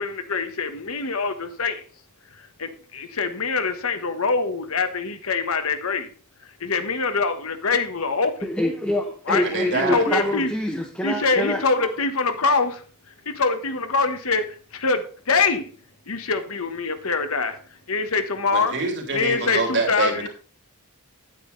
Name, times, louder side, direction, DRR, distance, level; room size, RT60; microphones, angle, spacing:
voice 1, 0.0-1.8 2.4-6.1 6.6-8.3 9.3-9.4 9.7-10.5 11.0-12.8 13.2-15.7 16.1-17.6 17.9-18.7 19.1-20.3, left 4 dB, 70° left, 9 dB, 1.2 m, -24 dB
voice 2, 8.4-11.9, left 1 dB, 5° left, 0 dB, 1.1 m, -26 dB
voice 3, 9.4-10.3 18.5-20.3, right 3 dB, 55° right, 2 dB, 2.9 m, -26 dB
9.3 x 9.1 x 3.9 m, 0.40 s
head